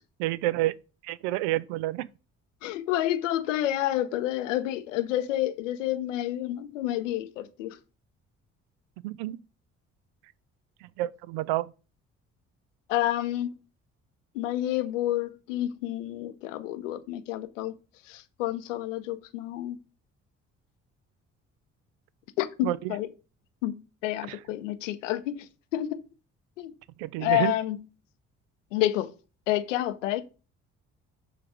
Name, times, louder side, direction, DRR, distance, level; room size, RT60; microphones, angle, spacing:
voice 1, 0.2-0.7 1.0-2.1 9.0-9.4 10.8-11.7 22.6-22.8 24.3-24.4 27.0-27.5, right 16 dB, 70° right, 0.5 m, -29 dB
voice 2, 2.6-7.8 12.9-13.6 14.3-17.7 18.0-19.8 22.4-23.1 23.6-26.0 26.6-26.7 27.2-27.8 28.7-29.1 29.5-30.2, left 13 dB, 80° left, 0.6 m, -29 dB
6.4 x 3.3 x 4.8 m
figure-of-eight pair, 45°, 37 cm